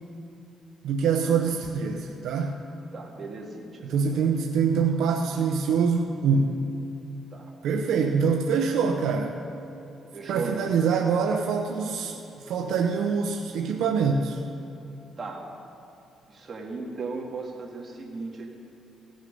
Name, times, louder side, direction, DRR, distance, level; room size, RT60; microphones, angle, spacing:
voice 1, 0.8-2.6 3.8-6.6 7.6-9.3 10.3-14.4, right 5 dB, 80° right, 2 dB, 0.7 m, -25 dB
voice 2, 2.9-4.3 7.3-7.5 10.1-10.7 15.2-15.5 16.3-18.5, right 3 dB, 40° right, -1 dB, 2.1 m, -36 dB
17.5 x 6.4 x 5.3 m, 2.8 s
cardioid pair, 90°, 0 cm